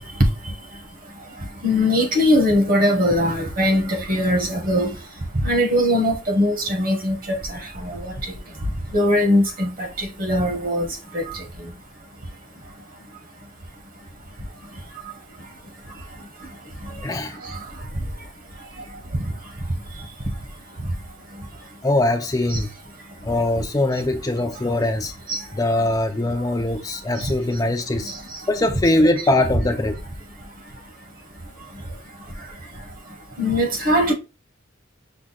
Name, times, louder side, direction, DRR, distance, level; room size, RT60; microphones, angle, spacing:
voice 1, 1.6-4.9 5.4-8.0 8.9-11.4 22.5-22.6 25.3-25.4 33.4-34.1, left 1 dB, 50° right, 1.2 m, -20 dB
voice 2, 17.0-17.4 21.8-22.7 23.2-25.1 25.5-28.1 28.5-30.0, left 1 dB, 20° left, 0.4 m, -21 dB
6.0 x 2.2 x 3.9 m
head